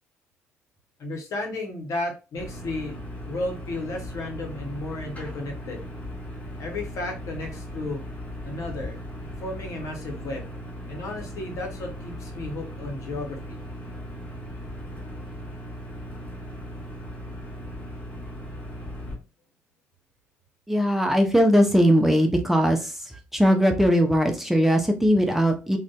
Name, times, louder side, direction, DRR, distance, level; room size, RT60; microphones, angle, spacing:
voice 1, 1.0-3.0 3.2-5.8 6.6-8.0 8.4-9.0 9.4-10.5 10.9-13.6, left 2 dB, 65° left, 2 dB, 0.8 m, -33 dB
sound 1, 2.4-19.2, equal, 25° left, 1.0 m, -38 dB
voice 2, 20.7-25.8, equal, 5° right, 4 dB, 0.6 m, -20 dB
2.5 x 2.2 x 2.2 m, 0.31 s
hypercardioid pair, 50°, 6 cm